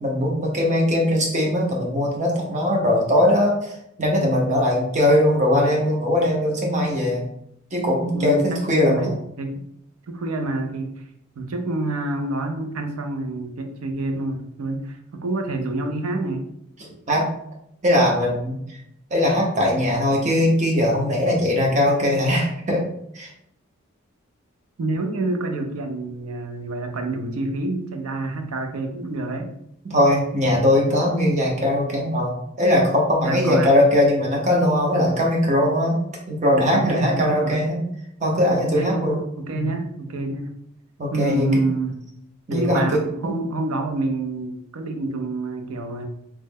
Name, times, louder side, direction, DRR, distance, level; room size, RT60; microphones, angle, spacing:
voice 1, 0.0-7.2 7.7-9.2 16.8-17.3 17.8-18.6 19.1-22.8 23.1-23.3 29.8-36.0 36.3-37.8 38.2-39.2 39.5-39.6 41.0-41.4 42.5-43.3, left 1 dB, 35° right, -1 dB, 0.7 m, -20 dB
voice 2, 8.1-9.7 10.1-11.0 11.4-16.5 24.8-29.5 33.3-33.7 36.7-37.7 38.7-39.1 39.4-40.5 41.1-42.0 42.5-46.0, right 2 dB, 75° right, 5 dB, 0.5 m, -27 dB
3.0 x 2.1 x 3.5 m, 0.76 s
head